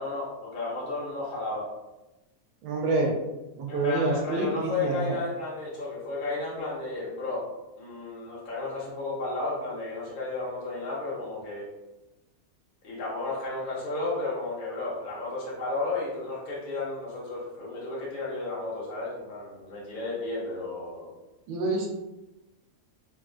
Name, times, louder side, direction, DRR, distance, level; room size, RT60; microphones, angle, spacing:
voice 1, 0.0-1.7 3.7-7.5 7.8-11.7 12.8-21.1, left 3 dB, 45° left, -6 dB, 0.7 m, -33 dB
voice 2, 2.6-3.1 3.6-5.2 21.5-21.9, right 2 dB, 90° right, 0 dB, 1.1 m, -27 dB
3.0 x 2.3 x 2.4 m, 1.0 s
omnidirectional pair, 1.5 m